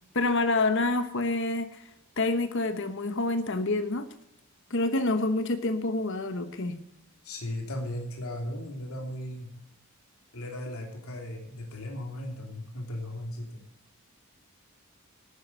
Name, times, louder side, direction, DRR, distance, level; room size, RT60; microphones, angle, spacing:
voice 1, 0.1-1.8 2.2-4.1 4.7-6.8, left 2 dB, 60° left, 10 dB, 1.1 m, -27 dB
voice 2, 7.2-9.5 10.3-13.6, left 1 dB, 90° left, 2 dB, 2.9 m, -36 dB
12.0 x 9.5 x 6.5 m, 0.78 s
head